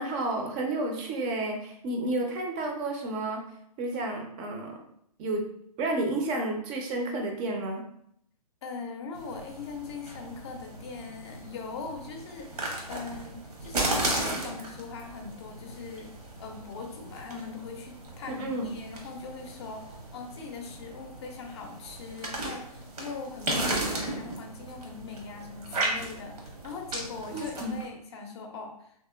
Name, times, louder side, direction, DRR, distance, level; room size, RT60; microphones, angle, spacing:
voice 1, 0.0-3.4 3.8-4.8 5.2-5.4 5.8-7.8 18.3-18.7 27.3-27.8, right 2 dB, 25° right, 2 dB, 0.4 m, -31 dB
voice 2, 8.6-16.1 16.4-28.9, left 4 dB, 45° left, 3 dB, 0.5 m, -41 dB
sound 1, 9.1-27.9, right 2 dB, 75° right, 0.9 m, -36 dB
2.9 x 2.8 x 2.2 m, 0.71 s
figure-of-eight pair, 125°, 20 cm